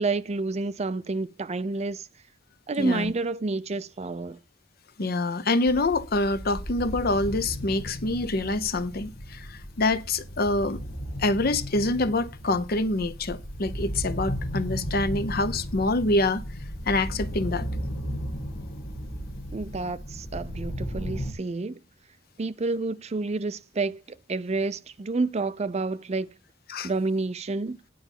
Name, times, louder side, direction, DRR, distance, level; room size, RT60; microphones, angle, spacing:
voice 1, 0.0-2.1 2.7-4.4 19.5-21.8 22.4-24.0 24.3-26.3 26.8-27.8, right 3 dB, 35° right, 0.5 m, -29 dB
voice 2, 2.8-3.1 5.0-10.8 11.2-16.4 16.9-17.7 26.7-26.9, left 2 dB, 55° left, 0.8 m, -26 dB
sound 1, 5.7-21.3, equal, 85° left, 2.1 m, -35 dB
10.0 x 4.0 x 7.2 m
head